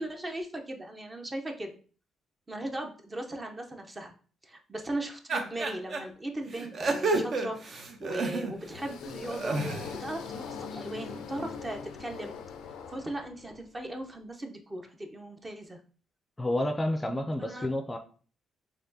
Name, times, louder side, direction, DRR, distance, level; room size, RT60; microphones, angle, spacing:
voice 1, 0.0-1.7 2.5-4.1 4.4-12.4 12.9-15.8 17.4-17.7, right 1 dB, 25° right, 4 dB, 0.7 m, -38 dB
sound 1, 5.3-6.0 6.5-8.7 9.2-9.9, right 3 dB, 55° right, 0.7 m, -30 dB
sound 2, 8.5-13.7, left 6 dB, 90° left, 0.4 m, -42 dB
voice 2, 16.4-18.0, left 1 dB, 20° left, 5 dB, 0.4 m, -30 dB
4.2 x 2.9 x 2.7 m, 0.41 s
cardioid pair, 90°, 0 cm